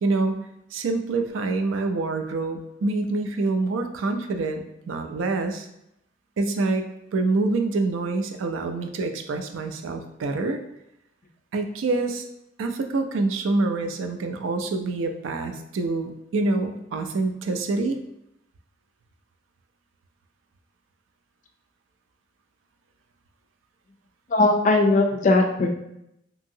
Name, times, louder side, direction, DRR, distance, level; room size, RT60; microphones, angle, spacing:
voice 1, 0.0-0.4 0.7-5.7 6.4-10.6 11.5-12.2 12.6-18.0, right 3 dB, 90° right, 6 dB, 0.4 m, -26 dB
voice 2, 24.3-25.7, left 2 dB, 40° left, 4 dB, 0.4 m, -19 dB
2.8 x 2.7 x 2.7 m, 0.82 s
head